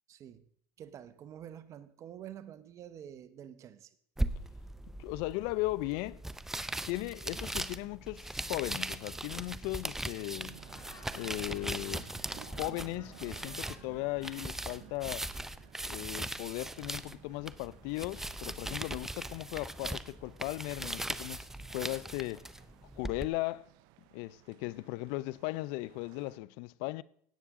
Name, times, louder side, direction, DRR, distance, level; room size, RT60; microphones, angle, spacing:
voice 1, 0.1-0.4 0.8-4.0, right 10 dB, 40° right, 0.9 m, -48 dB
sound 1, 4.2-23.3, right 1 dB, 5° right, 0.5 m, -39 dB
voice 2, 5.0-6.2 6.9-10.6 11.1-12.1 12.4-15.3 15.8-22.5 23.0-23.7 24.1-27.0, left 20 dB, 65° left, 0.5 m, -37 dB
sound 2, 10.3-26.4, right 17 dB, 65° right, 0.5 m, -57 dB
Laughter, 10.5-14.6, left 4 dB, 45° left, 3.4 m, -57 dB
16.5 x 8.6 x 3.7 m
supercardioid pair, 115°, 8 cm